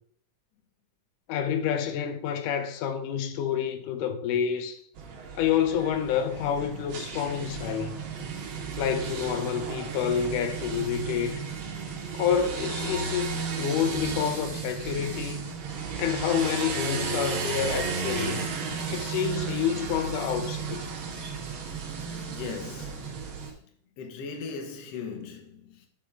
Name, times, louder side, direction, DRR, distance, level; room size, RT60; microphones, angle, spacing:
voice 1, 1.3-4.8 5.3-8.0 8.8-11.4 12.1-13.3 13.6-15.4 16.0-18.5 18.9-20.8, left 8 dB, 80° left, 2.3 m, -28 dB
sound 1, 5.0-23.5, right 5 dB, 65° right, 1.3 m, -34 dB
voice 2, 22.3-23.5 24.0-25.9, left 5 dB, 65° left, 1.8 m, -39 dB
7.5 x 5.3 x 4.6 m
omnidirectional pair, 3.8 m